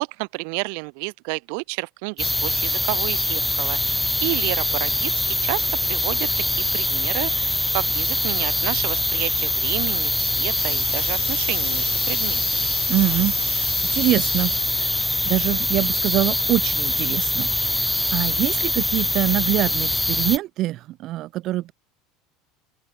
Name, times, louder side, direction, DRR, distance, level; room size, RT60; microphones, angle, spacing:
voice 1, 0.0-12.8, right 40 dB or more, 70° right, 6.2 m, -30 dB
sound 1, 2.2-20.4, left 1 dB, 5° left, 4.5 m, -23 dB
Sink (filling or washing), 9.8-14.9, left 16 dB, 90° left, 7.5 m, -38 dB
voice 2, 12.9-13.6 13.9-15.0 15.3-21.7, right 15 dB, 50° right, 4.0 m, -24 dB
open air
supercardioid pair, 115°, 0 cm